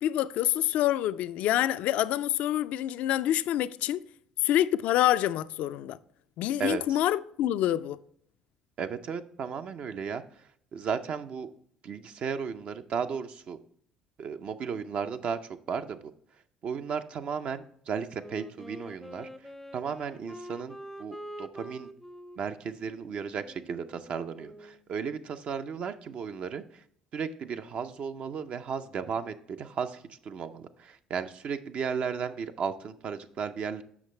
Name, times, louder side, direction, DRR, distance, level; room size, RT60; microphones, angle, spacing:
voice 1, 0.0-4.0 4.4-6.0 6.4-8.0, left 12 dB, 65° left, 0.3 m, -26 dB
voice 2, 6.6-7.0 8.8-10.2 10.7-11.5 11.8-13.6 14.2-15.4 15.7-16.1 16.6-19.3 19.7-21.9 22.4-26.8 27.1-33.8, right 6 dB, 55° right, 0.5 m, -35 dB
Wind instrument woodwind instrument, 18.1-24.8, equal, 5° left, 0.5 m, -46 dB
7.2 x 5.8 x 3.2 m
hypercardioid pair, 65°, 3 cm